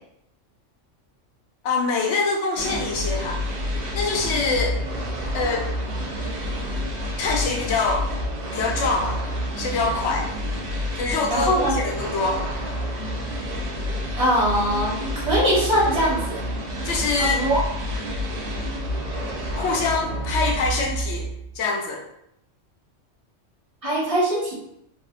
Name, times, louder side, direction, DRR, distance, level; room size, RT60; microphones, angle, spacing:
voice 1, 1.6-3.4 3.9-4.8 5.3-5.7 7.2-8.1 8.5-9.2 9.6-10.3 11.0-12.4 16.8-17.4 19.5-21.3 21.5-22.0, left 3 dB, 70° left, 0 dB, 0.9 m, -24 dB
sound 1, 2.6-21.6, equal, 65° right, 0.4 m, -29 dB
voice 2, 11.3-11.8 14.2-16.4 17.2-17.6 23.8-24.5, equal, 30° right, -7 dB, 1.1 m, -22 dB
2.7 x 2.4 x 2.4 m, 0.78 s
omnidirectional pair, 1.3 m